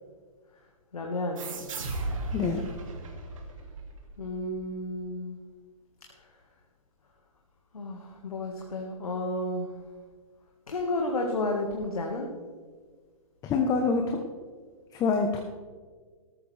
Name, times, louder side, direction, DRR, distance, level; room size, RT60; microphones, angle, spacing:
voice 1, 0.9-1.5 4.2-5.4 6.2-6.3 7.7-9.7 10.7-12.3, left 2 dB, 85° left, 0 dB, 1.8 m, -32 dB
sound 1, 1.4-4.6, right 2 dB, 65° right, 2.5 m, -36 dB
voice 2, 13.4-14.2 14.9-15.4, left 4 dB, 20° left, 3 dB, 1.0 m, -26 dB
13.5 x 13.0 x 3.4 m, 1.6 s
hypercardioid pair, 130°, 18 cm